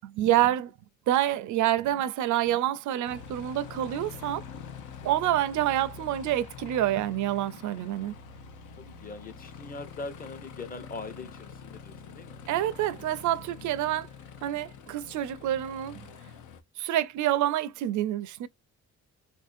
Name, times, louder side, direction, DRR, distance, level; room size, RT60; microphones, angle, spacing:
voice 1, 0.0-0.7 1.1-4.4 5.0-8.1 12.5-14.1 14.4-16.1 16.8-18.5, right 13 dB, 75° right, 0.5 m, -27 dB
voice 2, 2.4-3.0 5.0-5.1 8.8-12.4 13.6-13.9, left 3 dB, 30° left, 0.9 m, -42 dB
Aircraft, 3.0-16.6, left 6 dB, 80° left, 0.7 m, -45 dB
3.2 x 2.6 x 2.4 m
cardioid pair, 90°, 30 cm